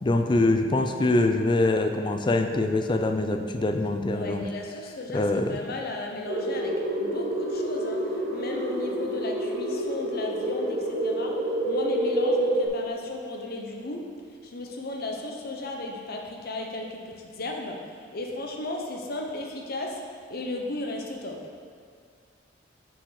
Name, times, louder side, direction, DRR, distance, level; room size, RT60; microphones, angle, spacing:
voice 1, 0.0-4.5 5.1-5.6, left 2 dB, 25° left, 5 dB, 0.4 m, -24 dB
voice 2, 4.1-11.4 11.7-14.0 14.4-20.0 20.3-21.4, left 2 dB, 50° left, 2 dB, 0.8 m, -35 dB
sound 1, 6.3-12.7, right 1 dB, 50° right, 1.0 m, -28 dB
5.8 x 5.0 x 4.8 m, 2.1 s
head